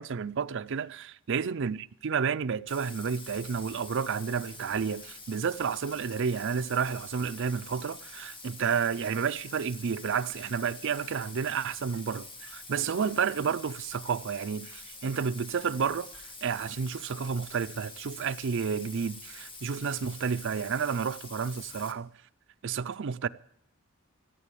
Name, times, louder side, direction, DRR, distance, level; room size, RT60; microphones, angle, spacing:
voice 1, 0.0-22.1 22.6-23.3, right 6 dB, 60° right, 0.5 m, -31 dB
Bathtub (filling or washing), 2.7-21.9, left 3 dB, 25° left, 1.4 m, -46 dB
14.0 x 9.0 x 8.5 m
head